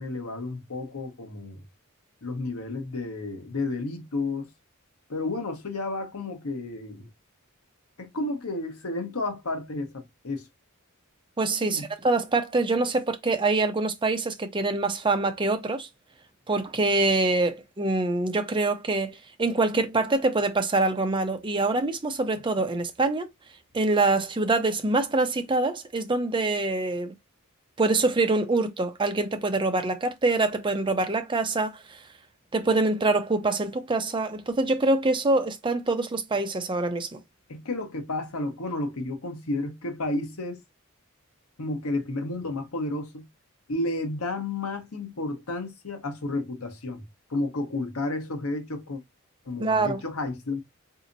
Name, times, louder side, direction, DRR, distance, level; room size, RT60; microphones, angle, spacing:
voice 1, 0.0-1.6 2.2-4.5 5.1-7.1 8.0-10.5 11.6-11.9 37.5-40.6 41.6-43.3 43.7-47.0 47.3-49.0 49.4-50.6, left 2 dB, 80° left, 1.0 m, -31 dB
voice 2, 11.4-15.9 16.5-23.3 23.7-27.1 27.8-32.0 32.5-37.2 49.6-50.0, right 3 dB, 20° right, 0.5 m, -25 dB
4.0 x 2.8 x 2.6 m
head